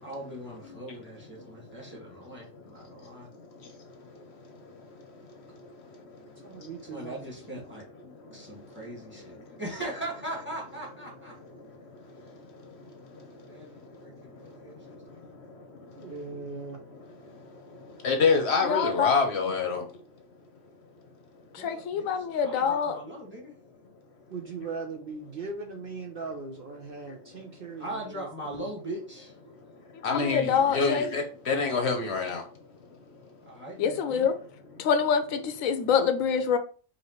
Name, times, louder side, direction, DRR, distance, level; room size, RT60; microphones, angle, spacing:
voice 1, 0.0-3.3 6.9-7.8 8.3-11.4 13.3-15.2 21.6-22.1 22.4-23.5 27.8-29.3 33.4-34.3, right 1 dB, 10° right, 1.6 m, -40 dB
voice 2, 6.4-7.3 16.0-16.8 24.3-28.3, right 4 dB, 55° right, 0.7 m, -39 dB
voice 3, 18.0-19.8 30.0-32.4, left 4 dB, 60° left, 0.9 m, -26 dB
voice 4, 18.6-19.1 21.5-23.0 29.9-31.1 33.8-34.3 34.8-36.6, left 7 dB, 90° left, 1.0 m, -26 dB
4.9 x 2.9 x 3.0 m
omnidirectional pair, 1.4 m